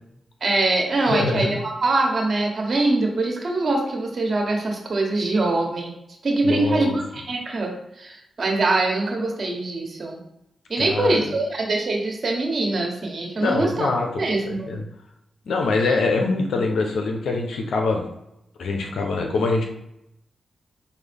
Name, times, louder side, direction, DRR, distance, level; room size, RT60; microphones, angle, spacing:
voice 1, 0.4-5.9 6.2-10.2 10.7-13.9 14.2-14.7, right 2 dB, 55° right, 0 dB, 1.3 m, -23 dB
voice 2, 1.1-1.6 6.4-7.0 10.8-11.3 13.4-14.1 14.5-14.8 15.5-18.0 18.6-19.7, left 3 dB, 75° left, 2 dB, 0.7 m, -24 dB
5.0 x 2.6 x 3.4 m, 0.81 s
supercardioid pair, 45°, 0 cm